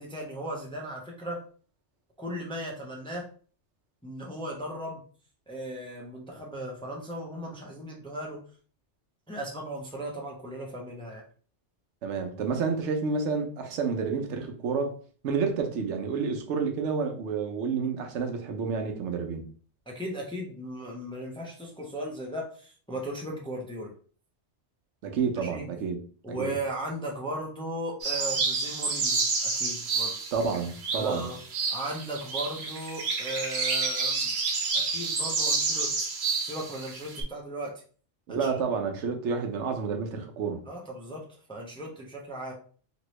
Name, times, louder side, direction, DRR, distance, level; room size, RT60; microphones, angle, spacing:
voice 1, 0.0-1.4 2.2-3.3 4.0-5.0 5.5-8.4 9.3-11.2 19.9-23.9 25.4-25.7 26.2-30.1 31.0-31.4 31.7-34.3 34.7-36.1 36.4-37.8 38.3-38.6 40.7-42.5, right 1 dB, 5° left, 0.5 m, -37 dB
voice 2, 12.0-15.0 15.2-19.4 25.0-26.0 26.4-26.6 30.3-31.3 38.3-40.6, right 5 dB, 85° right, 1.0 m, -29 dB
sound 1, 28.0-37.2, right 4 dB, 70° right, 1.0 m, -29 dB
3.0 x 2.6 x 3.0 m
omnidirectional pair, 1.2 m